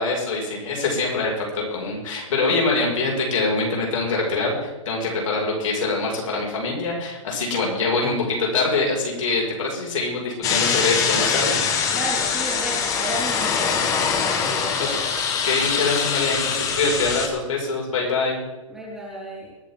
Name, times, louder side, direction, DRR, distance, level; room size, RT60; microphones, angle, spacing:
voice 1, 0.0-11.6 15.4-18.4, left 3 dB, 70° left, -1 dB, 5.2 m, -24 dB
sound 1, 10.4-17.3, left 6 dB, 20° left, 1.2 m, -23 dB
voice 2, 11.9-14.8 18.7-19.5, right 2 dB, 5° right, -7 dB, 4.0 m, -33 dB
23.0 x 8.8 x 3.6 m, 1.1 s
hypercardioid pair, 155°, 17 cm